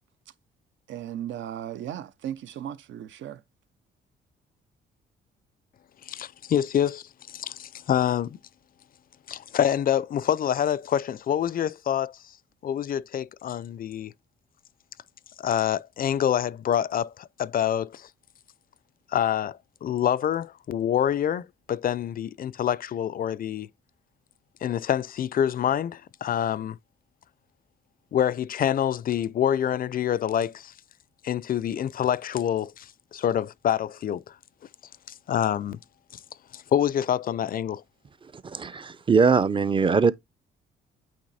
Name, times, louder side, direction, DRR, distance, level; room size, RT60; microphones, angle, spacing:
voice 1, 0.9-3.4, right 10 dB, 70° right, 0.7 m, -36 dB
voice 2, 6.1-8.4 9.3-12.2 12.6-14.1 15.4-18.1 19.1-23.7 24.6-26.8 28.1-30.7 31.2-34.3 35.3-35.8 36.5-37.8, left 10 dB, 45° left, 0.5 m, -26 dB
voice 3, 38.4-40.1, right 5 dB, 25° right, 0.5 m, -21 dB
8.7 x 3.0 x 4.0 m
cardioid pair, 90°, 20 cm